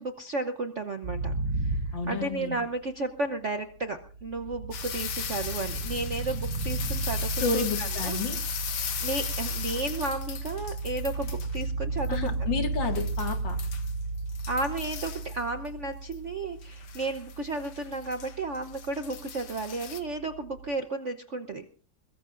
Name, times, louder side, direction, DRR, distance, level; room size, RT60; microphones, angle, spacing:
voice 1, 0.0-8.2 9.0-12.5 14.5-21.6, right 2 dB, 50° right, 7 dB, 0.9 m, -33 dB
sound 1, 1.0-2.8 3.8-20.7, right 3 dB, 35° right, 6.6 m, -34 dB
voice 2, 1.9-2.6 7.4-8.4 12.1-13.6, left 4 dB, 60° left, 5 dB, 2.7 m, -31 dB
sound 2, 4.7-11.7 12.0-12.1 12.9-13.9 14.3-15.4 16.1-16.2 16.6-20.0, left 8 dB, 80° left, 2.1 m, -37 dB
22.5 x 21.5 x 2.6 m, 0.40 s
omnidirectional pair, 2.3 m